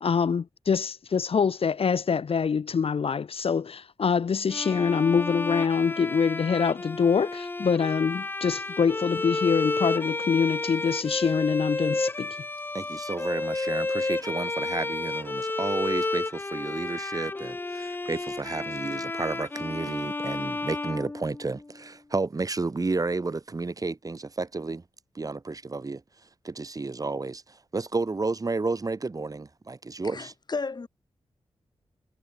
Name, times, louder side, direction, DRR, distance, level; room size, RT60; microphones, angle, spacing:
voice 1, 0.0-12.4, left 6 dB, 60° left, 1.3 m, -25 dB
Bowed string instrument, 4.5-21.7, left 2 dB, 20° left, 0.5 m, -31 dB
voice 2, 12.7-24.8 25.1-26.0 26.4-30.3, right 3 dB, 35° right, 3.2 m, -31 dB
voice 3, 30.1-30.9, left 4 dB, 40° left, 6.3 m, -33 dB
wide cardioid pair, 120°, 11 cm